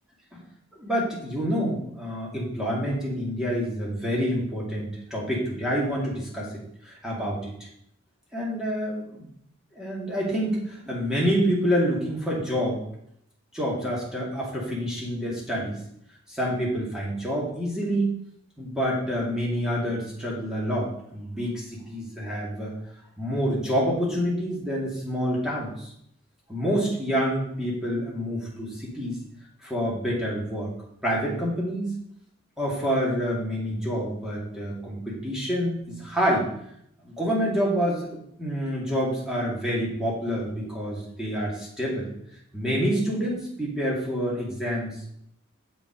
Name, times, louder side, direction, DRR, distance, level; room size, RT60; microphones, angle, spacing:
voice 1, 0.8-6.5 6.8-7.5 8.3-9.2 9.8-12.8 13.5-15.8 16.3-18.1 18.6-22.7 23.2-25.9 26.5-29.2 29.6-30.7 31.0-31.9 32.6-36.5 37.0-42.1 42.5-45.0, equal, 5° right, -5 dB, 2.2 m, -27 dB
8.1 x 5.4 x 5.1 m, 0.71 s
head